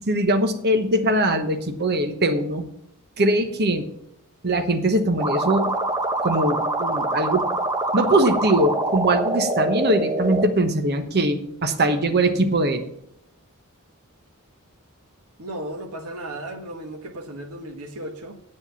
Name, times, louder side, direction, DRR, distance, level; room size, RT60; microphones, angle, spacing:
voice 1, 0.1-2.6 3.2-3.9 4.4-5.7 6.2-7.4 7.9-12.8, right 1 dB, 45° right, 1.1 m, -21 dB
sound 1, 5.2-10.4, right 2 dB, 15° right, 1.1 m, -25 dB
voice 2, 15.4-18.4, right 1 dB, 85° right, 1.4 m, -35 dB
8.6 x 7.4 x 7.0 m
head